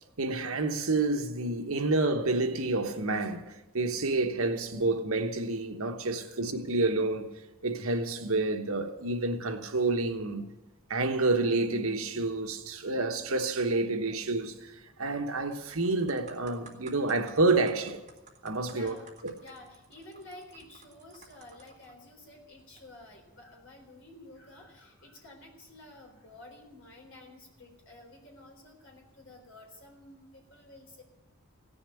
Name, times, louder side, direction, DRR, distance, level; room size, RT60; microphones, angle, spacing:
voice 1, 0.2-7.3 7.6-10.5 10.9-18.0 18.4-19.0 19.2-19.3, right 3 dB, 75° right, 1.2 m, -29 dB
voice 2, 6.1-6.5 10.4-10.5 14.1-14.2 18.6-31.0, left 2 dB, 55° left, 4.0 m, -51 dB
sound 1, 14.9-15.1 15.5-21.9 22.6-22.8, right 4 dB, 30° right, 2.0 m, -53 dB
16.5 x 7.0 x 9.9 m
head